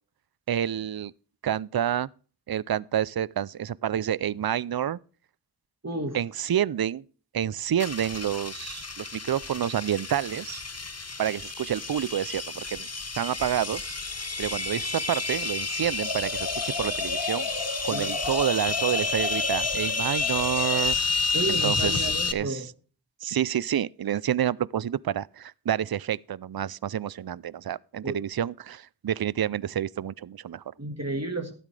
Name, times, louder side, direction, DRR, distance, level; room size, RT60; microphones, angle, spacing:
voice 1, 0.5-1.1 1.4-2.1 2.5-5.0 6.1-7.0 7.3-10.6 11.2-12.9 13.2-14.0 14.4-17.5 17.8-21.0 21.5-22.7 23.2-30.6, right 10 dB, 60° right, 0.5 m, -28 dB
voice 2, 5.8-6.2 17.9-18.1 21.3-22.7 28.0-28.2 30.8-31.5, right 2 dB, 35° right, 1.7 m, -31 dB
sound 1, 7.8-22.3, left 3 dB, 35° left, 1.0 m, -30 dB
sound 2, 16.0-20.9, left 3 dB, 75° left, 4.5 m, -34 dB
13.5 x 12.0 x 3.3 m
wide cardioid pair, 45°, 43 cm